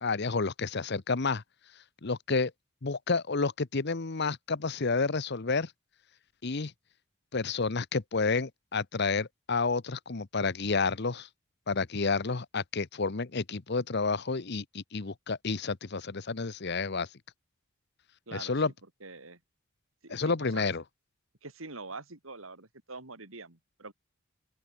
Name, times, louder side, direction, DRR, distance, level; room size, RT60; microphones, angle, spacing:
voice 1, 0.0-1.4 2.0-2.5 2.8-5.7 6.4-6.7 7.3-11.3 11.7-17.1 18.3-18.7 20.1-20.8, left 4 dB, 50° left, 0.9 m, -30 dB
voice 2, 19.0-19.4 20.0-20.7 21.4-23.9, right 3 dB, 75° right, 3.4 m, -44 dB
open air
head